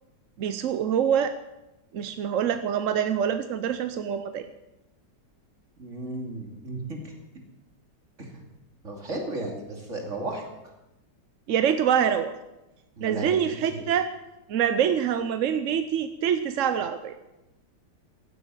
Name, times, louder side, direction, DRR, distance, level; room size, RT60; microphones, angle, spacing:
voice 1, 0.4-1.4 1.9-4.5 11.5-12.3 13.0-14.1 14.5-17.1, right 8 dB, 60° right, 10 dB, 0.9 m, -25 dB
voice 2, 5.8-7.1 8.2-8.4 8.8-10.5 13.0-13.8, right 2 dB, 40° right, 1 dB, 3.0 m, -34 dB
16.0 x 8.1 x 9.1 m, 0.98 s
omnidirectional pair, 1.9 m